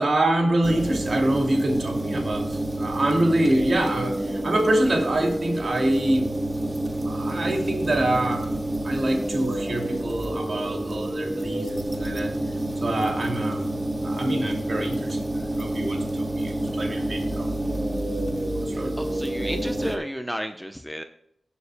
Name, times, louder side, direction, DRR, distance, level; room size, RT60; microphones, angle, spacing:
voice 1, 0.0-6.3 7.0-8.5 8.8-12.3 12.8-13.7 14.0-17.5 18.5-18.9, right 1 dB, 55° right, 2 dB, 2.5 m, -25 dB
sound 1, 0.6-20.0, right 1 dB, 25° right, 1.4 m, -28 dB
voice 2, 18.7-21.0, equal, ahead, 6 dB, 0.8 m, -33 dB
19.0 x 7.1 x 2.2 m, 0.76 s
cardioid pair, 65°, 0 cm